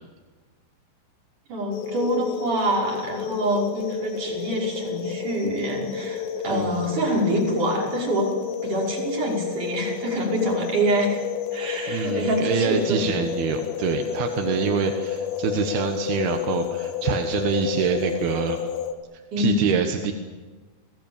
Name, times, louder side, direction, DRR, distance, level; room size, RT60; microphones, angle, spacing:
voice 1, 1.5-8.3 8.6-11.2 11.5-13.1 19.3-19.7, right 1 dB, 40° right, -2 dB, 6.9 m, -26 dB
sound 1, 1.7-18.9, left 7 dB, 80° left, 4.2 m, -30 dB
voice 2, 6.5-6.9 11.9-18.6 19.4-20.1, right 6 dB, 65° right, 5 dB, 2.8 m, -25 dB
29.5 x 19.5 x 9.0 m, 1.3 s
omnidirectional pair, 5.8 m